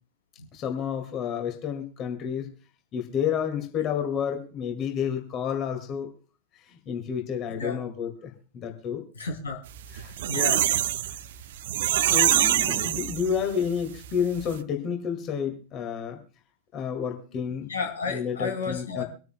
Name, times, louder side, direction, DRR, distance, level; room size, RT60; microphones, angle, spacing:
voice 1, 0.5-2.5 2.9-6.1 6.6-9.0 10.0-10.1 12.1-16.2 16.7-17.7 18.1-19.0, left 7 dB, 35° left, 4 dB, 2.1 m, -30 dB
voice 2, 9.1-9.6 10.3-10.7 17.7-19.0, left 4 dB, 70° left, 3 dB, 2.7 m, -31 dB
sound 1, 9.8-13.6 14.0-14.1 14.4-14.5, right 12 dB, 55° right, 0.6 m, -24 dB
25.0 x 9.4 x 2.2 m, 0.37 s
figure-of-eight pair, 90°, 0 cm